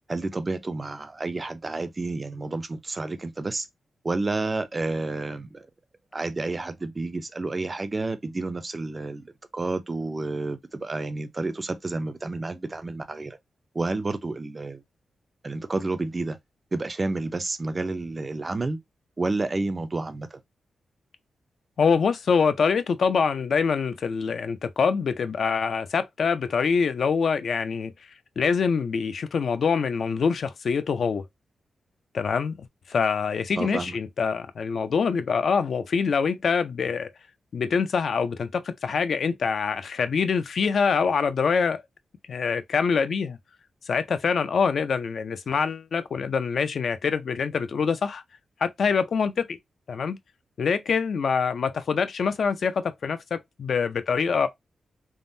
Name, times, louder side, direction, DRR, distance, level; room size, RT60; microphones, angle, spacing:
voice 1, 0.1-3.7 4.0-5.7 6.1-13.4 13.7-14.8 15.4-16.4 16.7-18.8 19.2-20.4 33.5-34.0, right 3 dB, 25° right, 0.3 m, -30 dB
voice 2, 21.8-27.9 28.4-31.2 32.1-37.1 37.5-41.8 42.3-43.4 43.9-48.2 48.6-49.6 49.9-50.2 50.6-54.5, left 5 dB, 55° left, 0.3 m, -25 dB
3.5 x 2.0 x 2.5 m
wide cardioid pair, 170°, 0 cm